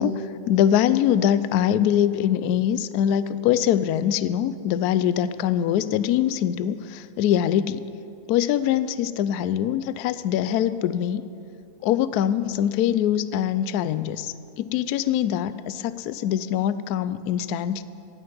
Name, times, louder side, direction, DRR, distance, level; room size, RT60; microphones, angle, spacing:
voice 1, 0.0-7.9 8.3-11.2 11.8-17.8, left 10 dB, 75° left, 14 dB, 0.9 m, -23 dB
16.5 x 6.4 x 9.3 m, 2.5 s
omnidirectional pair, 2.1 m